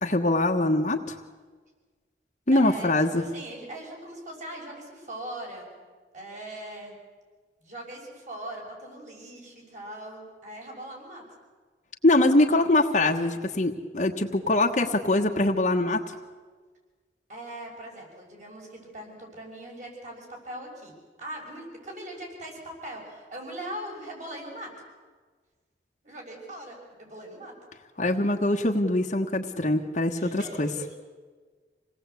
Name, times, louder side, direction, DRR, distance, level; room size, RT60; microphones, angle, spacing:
voice 1, 0.0-1.0 2.5-3.2 12.0-16.0 28.0-30.7, left 2 dB, 45° left, 1 dB, 1.3 m, -23 dB
voice 2, 2.5-5.8 6.1-7.0 7.6-11.2 17.3-24.7 26.0-27.5 30.1-31.0, right 1 dB, 45° right, 0 dB, 6.3 m, -40 dB
27.0 x 18.5 x 8.3 m, 1.4 s
head